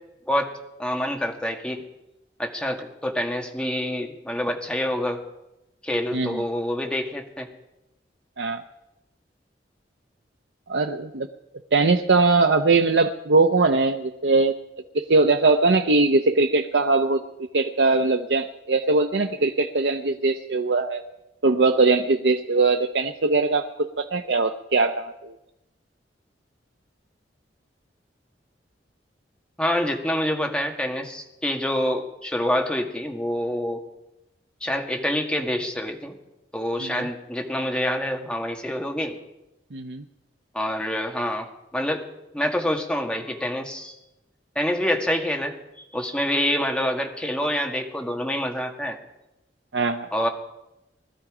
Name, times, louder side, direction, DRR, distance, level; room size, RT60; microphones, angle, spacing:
voice 1, 0.8-1.8 2.4-5.2 5.8-7.5 29.6-33.8 34.6-36.2 36.5-39.2 40.5-41.5 41.7-42.0 42.3-44.0 44.6-49.0 50.1-50.3, left 1 dB, 5° left, 3 dB, 1.8 m, -26 dB
voice 2, 10.7-11.3 11.7-14.5 14.9-17.2 17.5-21.0 21.4-25.3 36.8-37.1 39.7-40.0 49.7-50.1, right 3 dB, 80° right, 5 dB, 0.8 m, -21 dB
21.0 x 13.5 x 5.0 m, 0.93 s
head